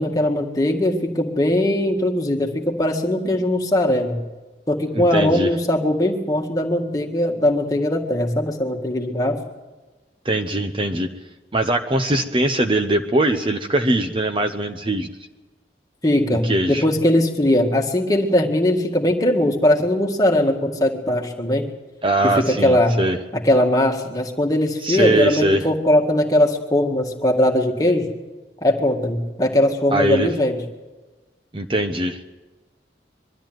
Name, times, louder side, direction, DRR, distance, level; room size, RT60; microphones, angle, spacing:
voice 1, 0.0-4.2 4.7-9.4 16.0-21.7 22.4-23.0 23.3-28.1 28.6-30.6, left 1 dB, 20° left, 2 dB, 1.9 m, -20 dB
voice 2, 4.9-5.5 10.2-11.1 11.5-15.1 16.4-16.8 22.0-23.2 24.8-25.6 29.9-30.3 31.5-32.2, right 1 dB, 30° right, 6 dB, 0.8 m, -21 dB
22.5 x 13.0 x 9.2 m, 1.2 s
head